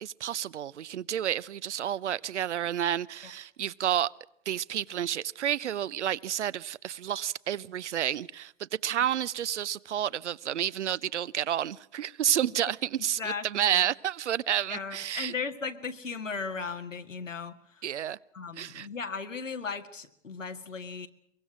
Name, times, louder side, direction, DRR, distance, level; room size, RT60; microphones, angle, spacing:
voice 1, 0.0-4.1 4.5-15.3 17.8-18.2 18.6-18.9, right 10 dB, 65° right, 0.8 m, -30 dB
voice 2, 13.2-13.9 14.7-17.8 18.3-21.1, left 5 dB, 85° left, 2.1 m, -37 dB
23.0 x 22.5 x 6.2 m
figure-of-eight pair, 115°, 37 cm